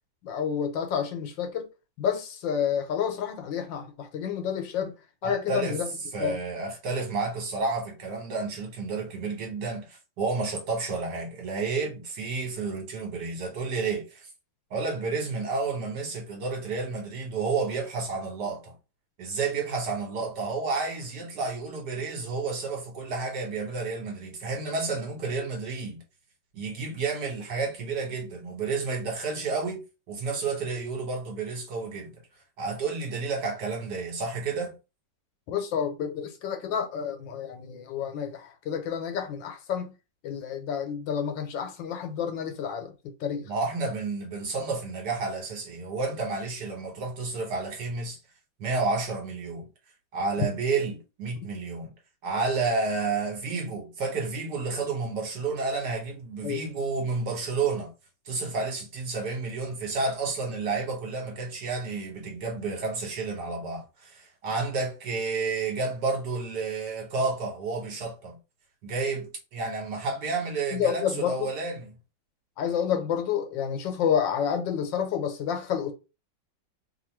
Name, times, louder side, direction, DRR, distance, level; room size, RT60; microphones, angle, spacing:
voice 1, 0.2-1.7 2.0-4.9 5.2-5.9 6.2-6.4 35.5-39.9 40.2-42.9 43.2-43.5 50.4-50.5 56.4-56.6 70.7-71.5 72.6-75.9, left 8 dB, 80° left, 1.5 m, -29 dB
voice 2, 5.2-5.8 6.1-14.3 14.7-18.7 19.2-26.0 26.5-29.8 30.1-32.1 32.6-34.8 43.5-48.2 48.6-49.7 50.1-51.9 52.2-57.9 58.3-68.4 68.8-71.9, right 4 dB, 65° right, 1.7 m, -31 dB
3.4 x 2.4 x 4.4 m
omnidirectional pair, 2.0 m